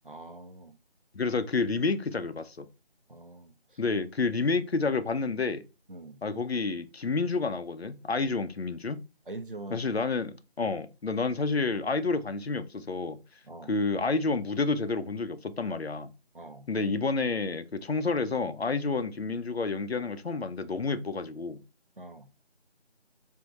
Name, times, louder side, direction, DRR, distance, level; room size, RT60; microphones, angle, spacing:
voice 1, 0.0-0.8 3.1-3.8 5.9-6.2 9.3-9.9 10.6-10.7 13.4-13.8 16.3-16.7 22.0-22.3, right 2 dB, 50° right, 0.4 m, -44 dB
voice 2, 1.1-2.6 3.8-5.6 6.2-9.0 9.7-13.2 13.7-16.1 16.7-21.6, left 4 dB, 65° left, 0.6 m, -29 dB
3.5 x 2.6 x 4.0 m
figure-of-eight pair, 170°, 34 cm